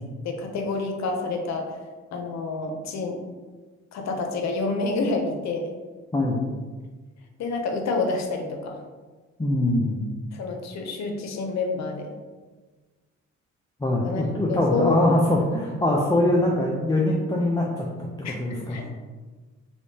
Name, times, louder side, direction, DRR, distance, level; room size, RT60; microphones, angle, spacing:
voice 1, 0.2-1.7 2.1-3.2 3.9-5.7 7.4-8.8 10.3-12.1 14.0-15.0 18.2-18.9, left 3 dB, 65° left, 4 dB, 0.6 m, -28 dB
voice 2, 6.1-6.4 9.4-10.0 13.8-18.9, left 1 dB, 15° left, -3 dB, 0.4 m, -23 dB
3.3 x 3.2 x 2.7 m, 1.4 s
cardioid pair, 90°, 30 cm